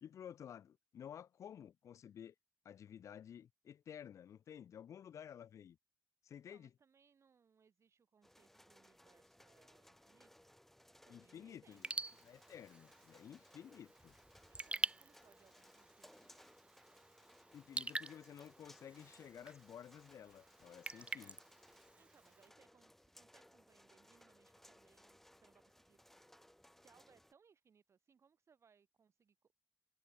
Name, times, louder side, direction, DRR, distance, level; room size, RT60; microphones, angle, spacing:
voice 1, 0.0-2.3 2.6-5.8 6.2-6.7 11.1-11.9 12.2-14.2 17.5-21.4, left 9 dB, 85° left, 0.4 m, -53 dB
voice 2, 6.3-10.5 11.0-11.8 14.5-16.6 21.9-26.2 26.7-29.5, right 6 dB, 65° right, 7.9 m, -71 dB
sound 1, 8.2-27.3, equal, 5° left, 6.5 m, -65 dB
Raindrop / Drip, 11.7-22.5, right 3 dB, 25° right, 0.4 m, -47 dB
wide cardioid pair, 95°, 5 cm